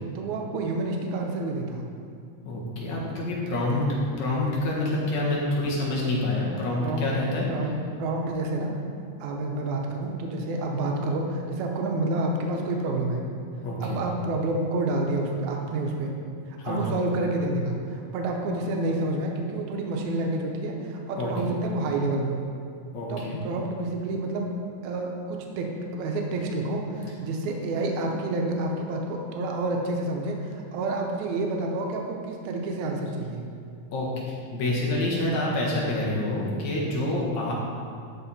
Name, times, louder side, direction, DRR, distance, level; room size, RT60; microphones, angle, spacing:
voice 1, 0.2-1.9 6.8-7.1 7.5-8.8 9.2-13.2 13.8-16.1 16.6-22.5 23.1-24.5 24.8-33.4, right 2 dB, 80° right, 1 dB, 2.2 m, -29 dB
voice 2, 2.5-3.9 4.2-7.5 13.6-14.0 16.6-16.9 21.2-21.3 22.9-23.4 33.9-37.5, left 2 dB, 70° left, -4 dB, 2.6 m, -27 dB
11.5 x 4.8 x 4.2 m, 2.5 s
omnidirectional pair, 3.5 m